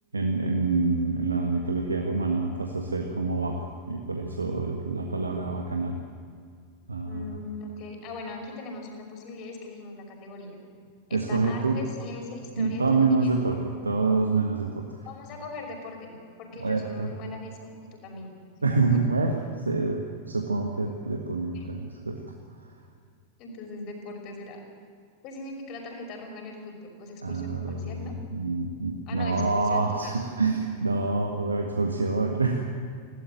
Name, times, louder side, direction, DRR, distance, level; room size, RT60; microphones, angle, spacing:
voice 1, 0.1-6.0 6.9-7.3 11.1-11.8 12.6-14.9 16.6-17.1 18.6-19.4 19.6-22.2 27.2-32.6, right 3 dB, 80° right, 2 dB, 1.7 m, -27 dB
voice 2, 7.0-10.6 11.1-13.4 15.0-17.6 18.0-18.3 18.6-19.0 21.5-21.7 23.4-24.6 25.2-28.1 29.1-30.1, left 3 dB, 40° left, 3 dB, 5.7 m, -40 dB
20.5 x 17.0 x 9.3 m, 2.1 s
figure-of-eight pair, 90°, 0 cm